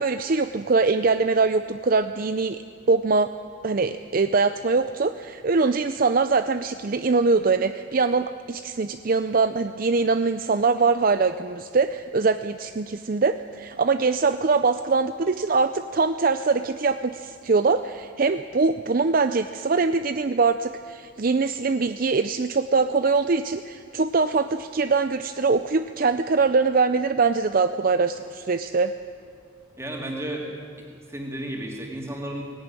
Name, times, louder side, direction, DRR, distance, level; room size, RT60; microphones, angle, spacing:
voice 1, 0.0-2.6 2.9-3.3 3.6-28.9, right 4 dB, 45° right, 10 dB, 0.5 m, -23 dB
voice 2, 29.8-30.5 31.1-32.4, right 1 dB, 15° right, 0 dB, 3.0 m, -32 dB
18.5 x 17.0 x 9.7 m, 2.3 s
head